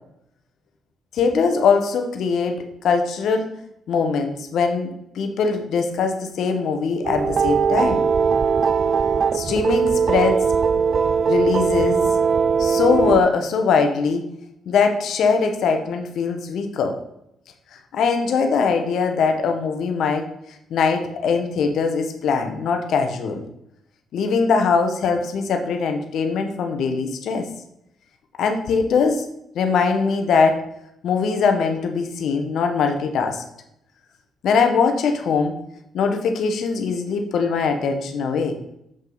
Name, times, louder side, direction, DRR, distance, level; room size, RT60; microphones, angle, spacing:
voice 1, 1.1-3.5 3.9-8.1 9.3-10.4 11.3-12.0 12.6-14.3 14.7-17.0 17.9-20.3 20.7-23.4 24.1-27.4 28.4-29.2 29.5-30.6 31.0-33.4 34.4-35.6 35.9-38.6, left 5 dB, 70° left, 5 dB, 1.0 m, -21 dB
sound 1, 7.0-13.2, right 6 dB, 50° right, 0.3 m, -20 dB
7.4 x 5.3 x 3.9 m, 0.78 s
cardioid pair, 90°, 0 cm